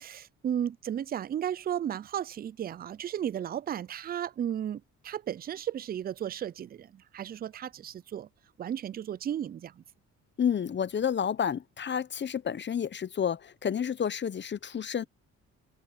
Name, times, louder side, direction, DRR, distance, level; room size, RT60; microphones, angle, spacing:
voice 1, 0.0-8.3 8.6-9.8, right 10 dB, 30° right, 0.4 m, -34 dB
voice 2, 10.4-15.0, left 8 dB, 35° left, 0.8 m, -30 dB
cardioid pair, 90°, 30 cm